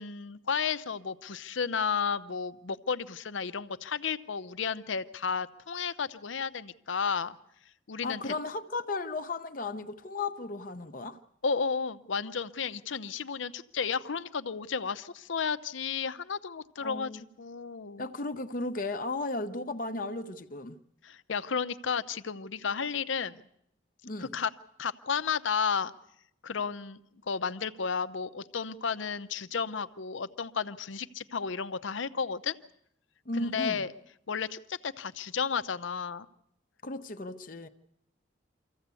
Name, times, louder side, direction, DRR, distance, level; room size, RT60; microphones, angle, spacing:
voice 1, 0.0-7.4 7.9-8.3 11.4-18.1 21.0-23.4 24.2-24.5 24.8-25.9 26.4-27.0 27.3-32.6 33.3-33.9 34.3-36.3, left 6 dB, 80° left, 0.7 m, -33 dB
voice 2, 8.0-11.2 16.8-17.2 18.0-20.8 24.0-24.3 33.3-33.8 36.8-37.7, left 2 dB, 45° left, 0.8 m, -35 dB
24.5 x 15.0 x 8.3 m
head